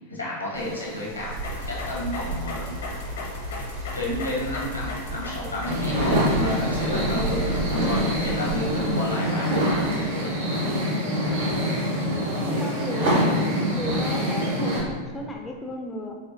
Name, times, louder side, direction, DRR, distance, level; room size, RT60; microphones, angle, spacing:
voice 1, 0.1-1.4 1.7-2.7 3.9-10.3, left 1 dB, 85° left, -5 dB, 1.0 m, -31 dB
sound 1, 0.5-8.8, right 3 dB, 40° right, 0.7 m, -35 dB
sound 2, 1.3-10.6, left 2 dB, 65° left, 0.6 m, -36 dB
sound 3, 5.7-14.8, equal, 65° right, 1.2 m, -25 dB
voice 2, 12.4-16.2, left 1 dB, 15° left, 2 dB, 0.4 m, -34 dB
4.0 x 2.6 x 2.7 m, 1.5 s
figure-of-eight pair, 90°, 0 cm